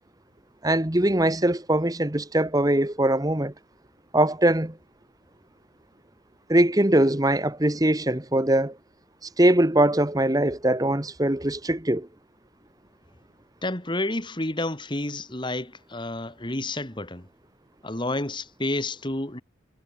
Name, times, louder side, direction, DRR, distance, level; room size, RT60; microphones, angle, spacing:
voice 1, 0.6-3.5 4.1-4.8 6.5-8.8 9.4-12.1, right 1 dB, 20° right, 1.3 m, -22 dB
voice 2, 13.6-17.3 17.8-19.4, left 2 dB, 25° left, 2.3 m, -30 dB
head